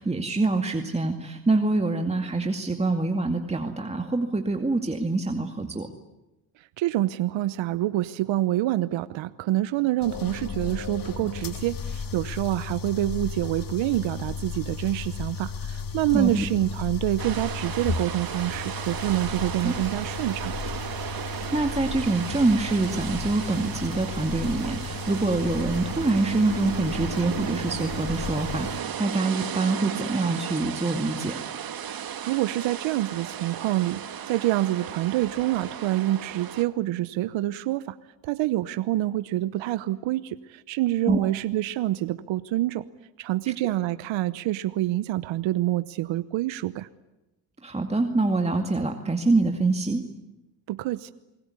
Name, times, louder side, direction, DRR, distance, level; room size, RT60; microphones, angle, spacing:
voice 1, 0.0-5.9 16.1-16.4 19.6-19.7 21.2-31.4 41.1-41.3 43.5-43.7 47.6-50.0, right 2 dB, 15° right, 4 dB, 2.3 m, -25 dB
voice 2, 6.6-20.5 32.2-34.0 34.3-38.0 38.2-42.9 43.2-46.9 50.7-51.1, right 15 dB, 65° right, 14 dB, 1.0 m, -27 dB
sound 1, 10.0-28.8, left 5 dB, 40° left, 2.7 m, -35 dB
sound 2, 17.2-36.6, right 9 dB, 45° right, 1.8 m, -35 dB
28.0 x 21.0 x 9.8 m, 1.0 s
supercardioid pair, 80°, 49 cm